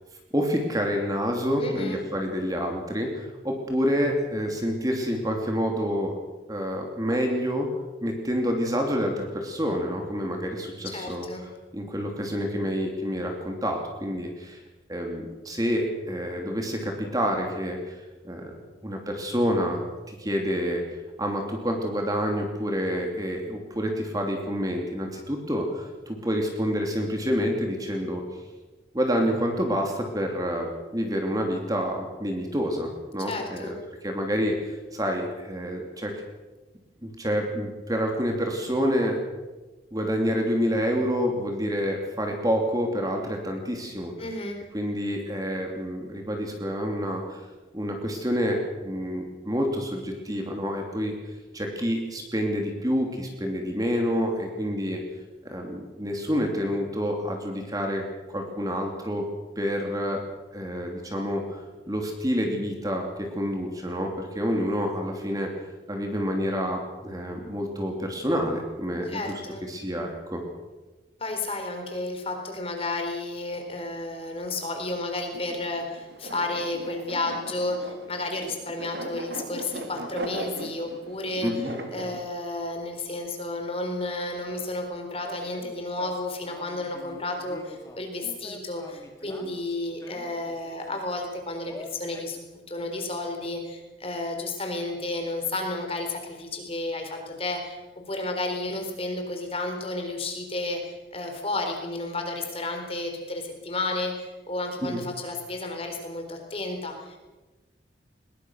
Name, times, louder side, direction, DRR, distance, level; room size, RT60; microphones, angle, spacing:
voice 1, 0.3-6.1 6.5-7.7 8.0-11.3 11.7-14.6 14.9-18.6 18.8-20.8 21.2-28.2 28.9-33.8 34.0-36.1 37.0-39.2 39.9-44.1 44.7-47.4 47.7-51.1 51.5-55.0 55.4-59.2 59.6-60.2 60.5-61.6 61.9-65.5 65.9-70.4 81.4-81.7 104.8-105.0, equal, 20° right, 2 dB, 3.1 m, -28 dB
voice 2, 1.6-2.0 10.8-11.4 33.2-33.7 44.2-44.6 69.1-69.6 71.2-81.5 81.9-107.2, left 2 dB, 30° left, 3 dB, 4.0 m, -32 dB
sound 1, 75.3-82.2, right 1 dB, 65° right, 3.1 m, -38 dB
sound 2, 85.2-91.1 91.7-92.4, equal, 15° left, 2.6 m, -45 dB
21.5 x 21.0 x 6.5 m, 1.2 s
head